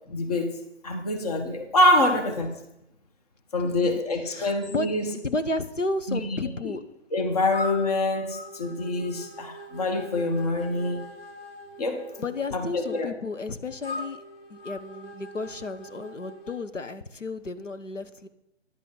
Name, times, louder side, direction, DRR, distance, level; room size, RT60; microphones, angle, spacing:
voice 1, 0.1-0.5 0.8-2.5 3.5-5.1 6.1-6.4 6.6-6.7 7.1-11.0 11.8-12.1 12.5-13.1, left 1 dB, 30° left, 5 dB, 1.3 m, -25 dB
voice 2, 4.3-6.8 12.2-14.2 14.5-18.3, left 3 dB, 80° left, 10 dB, 1.1 m, -32 dB
sound 1, 7.5-16.7, left 1 dB, 55° left, 1.9 m, -41 dB
10.5 x 8.6 x 5.4 m, 0.83 s
figure-of-eight pair, 145°, 36 cm